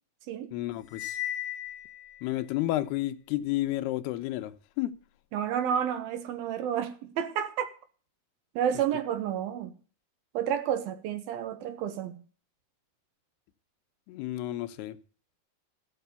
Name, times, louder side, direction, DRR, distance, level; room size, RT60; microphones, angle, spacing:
voice 1, 0.5-1.2 2.2-5.0 14.1-15.0, left 15 dB, 80° left, 2.8 m, -31 dB
Cymbal, 0.9-2.3, left 12 dB, 60° left, 2.7 m, -36 dB
voice 2, 5.3-7.7 8.6-9.7 10.3-12.2, right 9 dB, 75° right, 2.8 m, -30 dB
14.0 x 7.2 x 6.8 m
omnidirectional pair, 4.6 m